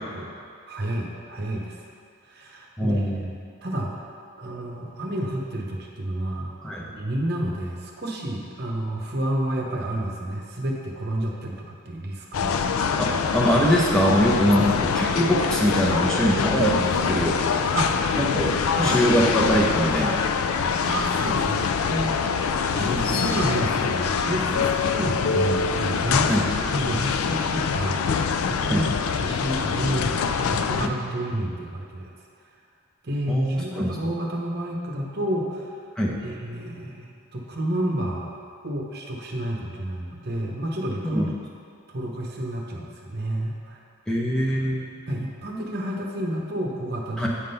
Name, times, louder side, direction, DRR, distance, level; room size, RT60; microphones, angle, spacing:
voice 1, 0.7-1.8 2.3-3.0 3.6-4.0 4.4-6.5 7.0-12.6 14.6-14.7 17.7-18.0 18.7-19.0 20.8-22.3 22.8-26.3 26.7-28.0 28.4-32.1 33.0-35.7 36.2-38.4 38.6-41.3 41.9-43.8 45.1-47.3, right 1 dB, 50° right, -1 dB, 0.9 m, -30 dB
voice 2, 2.8-3.3 6.6-6.8 13.0-17.4 18.1-18.5 18.8-20.2 22.7-23.4 26.3-26.4 28.7-28.9 30.8-30.9 33.3-34.0 36.0-36.2 41.1-41.3 44.1-44.9 47.2-47.3, equal, 5° left, -5 dB, 0.8 m, -23 dB
sound 1, 12.3-30.9, left 6 dB, 85° left, 0.4 m, -24 dB
8.5 x 3.7 x 5.5 m, 2.3 s
head